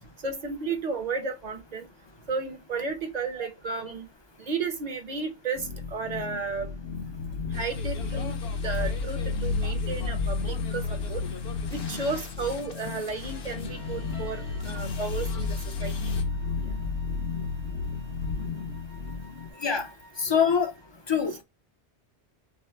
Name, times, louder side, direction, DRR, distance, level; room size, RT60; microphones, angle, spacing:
voice 1, 0.2-1.9 2.3-4.1 4.4-6.7 7.5-8.3 8.6-11.2 11.7-16.1 19.7-19.8, right 4 dB, 40° right, 0.9 m, -33 dB
sound 1, 5.6-19.5, left 4 dB, 80° left, 1.0 m, -32 dB
sound 2, 7.5-16.2, left 4 dB, 65° left, 1.2 m, -44 dB
sound 3, 13.7-20.9, right 1 dB, 85° right, 2.8 m, -55 dB
voice 2, 20.2-20.7 21.1-21.4, left 7 dB, 30° left, 0.6 m, -24 dB
6.3 x 2.1 x 3.4 m
omnidirectional pair, 1.1 m